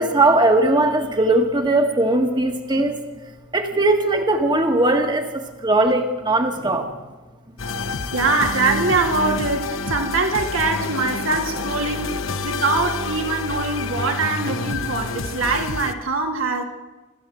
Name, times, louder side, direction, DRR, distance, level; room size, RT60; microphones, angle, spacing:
voice 1, 0.0-3.0 3.5-6.9, right 2 dB, 20° right, 1.7 m, -19 dB
sound 1, 7.6-15.9, left 3 dB, 70° left, 1.1 m, -28 dB
voice 2, 8.1-12.2 12.4-16.6, right 3 dB, 80° right, 2.9 m, -23 dB
27.5 x 13.0 x 7.8 m
head